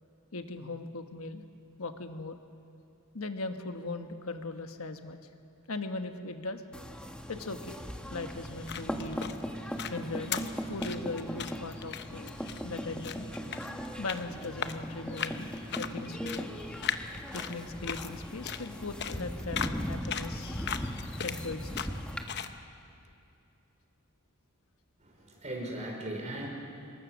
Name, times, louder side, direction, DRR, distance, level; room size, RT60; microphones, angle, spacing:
voice 1, 0.3-1.4 1.8-2.4 3.1-5.2 5.7-6.6 7.3-7.8 8.1-9.3 9.9-12.4 12.6-13.3 14.0-16.5 17.3-20.7 21.2-21.9, left 3 dB, 75° left, 7 dB, 1.3 m, -39 dB
sound 1, 6.7-22.2, equal, 5° left, 1.4 m, -39 dB
sound 2, 8.4-22.6, left 8 dB, 50° left, 0.8 m, -40 dB
voice 2, 25.0-26.5, right 1 dB, 35° right, 0 dB, 4.8 m, -38 dB
26.0 x 22.0 x 6.3 m, 2.5 s
head